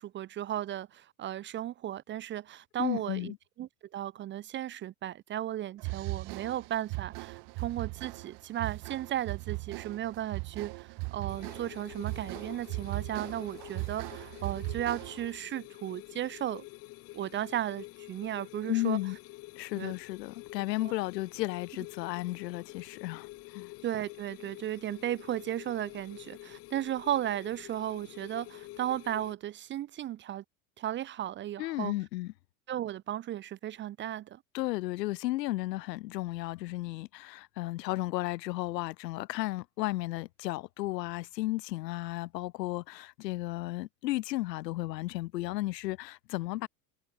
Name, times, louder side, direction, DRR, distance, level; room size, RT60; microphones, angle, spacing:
voice 1, 0.0-16.7 17.1-19.0 19.8-19.9 23.8-30.4 30.8-31.9 32.7-34.4, right 12 dB, 25° right, 0.4 m, -35 dB
voice 2, 2.8-3.4 18.7-19.2 19.6-23.7 31.6-32.3 34.5-46.7, left 18 dB, 85° left, 0.9 m, -34 dB
sound 1, 5.8-15.4, right 29 dB, 55° right, 1.6 m, -39 dB
sound 2, 11.3-29.3, left 19 dB, 30° left, 0.4 m, -48 dB
supercardioid pair, 110°, 48 cm